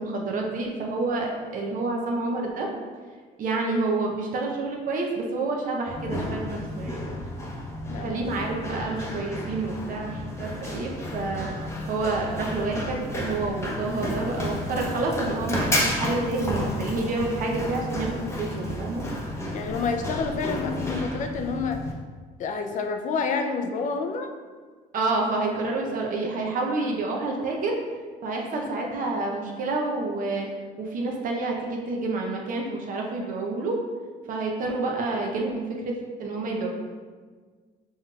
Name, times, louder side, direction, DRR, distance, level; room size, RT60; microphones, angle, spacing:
voice 1, 0.0-2.7 3.4-7.0 8.0-11.5 11.9-19.0 24.9-27.7 28.2-30.5 30.8-33.8 34.3-35.9 36.2-36.7, right 3 dB, 55° right, 0 dB, 0.6 m, -28 dB
Run, 5.9-21.9, left 1 dB, 15° left, 0.7 m, -32 dB
voice 2, 7.9-8.2 19.5-21.8 22.4-24.3, left 4 dB, 50° left, 5 dB, 0.5 m, -28 dB
5.5 x 2.9 x 2.3 m, 1.5 s
cardioid pair, 110°, 17 cm